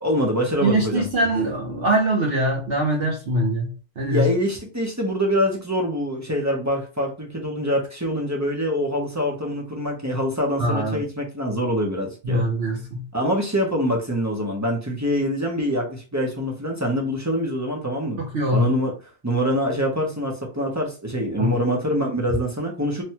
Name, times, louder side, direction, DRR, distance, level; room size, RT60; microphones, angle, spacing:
voice 1, 0.0-1.1 4.1-12.4 13.1-18.2 18.5-18.9 19.2-23.0, equal, 20° right, -1 dB, 0.5 m, -24 dB
voice 2, 0.6-4.3 10.6-11.0 12.2-13.0 18.2-18.7 21.4-21.6, right 1 dB, 55° right, -1 dB, 0.9 m, -23 dB
3.3 x 2.2 x 2.8 m, 0.35 s
omnidirectional pair, 1.3 m